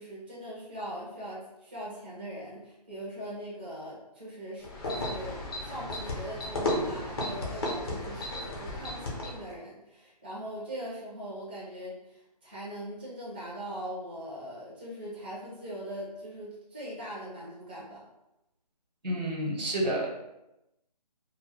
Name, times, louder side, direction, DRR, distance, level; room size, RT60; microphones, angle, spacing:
voice 1, 0.0-18.0, equal, 15° right, -8 dB, 0.4 m, -41 dB
sound 1, 4.6-9.5, left 1 dB, 35° left, 0.6 m, -34 dB
voice 2, 19.0-20.1, right 1 dB, 85° right, -2 dB, 0.9 m, -29 dB
2.1 x 2.0 x 3.2 m, 0.92 s
hypercardioid pair, 165°, 21 cm